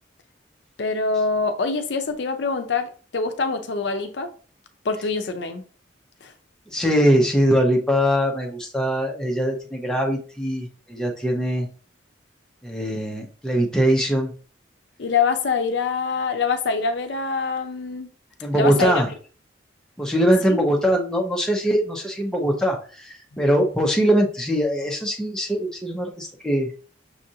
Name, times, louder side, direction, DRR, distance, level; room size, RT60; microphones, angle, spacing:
voice 1, 0.8-4.3 4.8-5.6 6.2-6.3 15.0-18.1 18.5-19.0 20.5-20.6, left 4 dB, 65° left, 0.5 m, -24 dB
voice 2, 6.7-11.7 12.6-14.3 18.4-19.1 20.0-26.7, equal, 5° left, 0.7 m, -22 dB
6.1 x 2.5 x 2.8 m
head